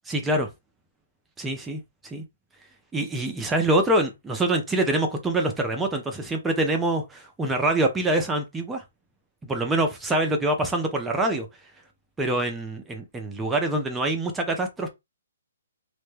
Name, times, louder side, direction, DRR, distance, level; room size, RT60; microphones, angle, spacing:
voice 1, 0.1-0.5 1.4-2.2 2.9-8.8 9.5-11.5 12.2-14.9, right 2 dB, 10° right, 0.4 m, -25 dB
2.1 x 2.0 x 3.1 m
hypercardioid pair, 150°, 0 cm